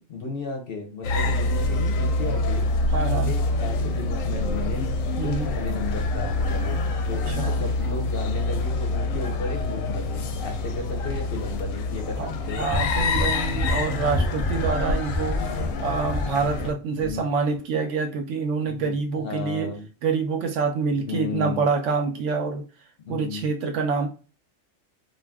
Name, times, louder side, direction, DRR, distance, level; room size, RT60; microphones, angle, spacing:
voice 1, 0.0-2.7 3.0-4.9 5.1-6.8 7.1-12.7 15.6-15.8 16.9-17.3 18.6-19.9 21.0-21.6 23.0-23.5, left 3 dB, 55° left, 0.7 m, -34 dB
sound 1, 1.0-16.7, left 2 dB, 90° left, 1.0 m, -26 dB
voice 2, 2.9-3.3 5.2-5.5 7.3-7.6 12.2-12.3 12.6-19.7 20.0-22.7 23.1-24.1, right 5 dB, 70° right, 0.9 m, -26 dB
sound 2, 12.7-16.7 17.0-17.2, left 1 dB, ahead, 1.0 m, -30 dB
2.6 x 2.3 x 3.4 m
omnidirectional pair, 1.3 m